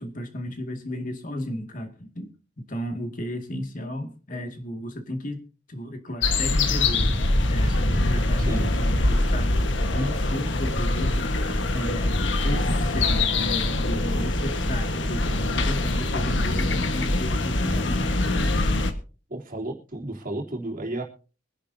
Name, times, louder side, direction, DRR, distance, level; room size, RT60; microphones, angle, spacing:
voice 1, 0.0-5.4 5.7-7.2 7.5-9.7 9.9-12.2 12.4-18.2, equal, 45° left, 4 dB, 2.3 m, -33 dB
sound 1, 6.2-18.9, left 2 dB, 75° left, 1.5 m, -23 dB
voice 2, 8.4-8.7 19.3-21.0, right 1 dB, 50° right, -1 dB, 3.3 m, -33 dB
24.0 x 10.5 x 2.8 m, 0.36 s
head